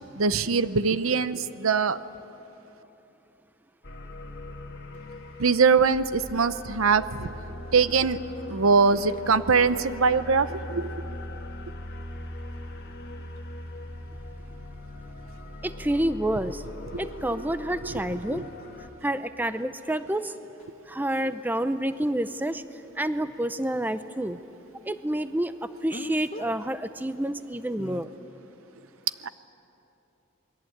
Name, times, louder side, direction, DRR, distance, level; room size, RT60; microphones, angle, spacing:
voice 1, 0.2-2.0 5.4-7.3 7.7-8.2 8.5-10.9 17.8-18.4, right 5 dB, 85° right, 14 dB, 0.7 m, -22 dB
sci-fi music, 3.8-18.9, left 1 dB, 50° left, 1.8 m, -40 dB
voice 2, 15.6-16.6 17.0-18.4 19.0-20.4 20.9-24.4 24.8-25.5 25.8-28.1, right 1 dB, 10° right, 11 dB, 0.5 m, -28 dB
Speech, 20.6-20.7 25.9-26.5 27.8-28.0, left 1 dB, 30° left, 0.8 m, -39 dB
28.5 x 21.5 x 8.7 m, 3.0 s
head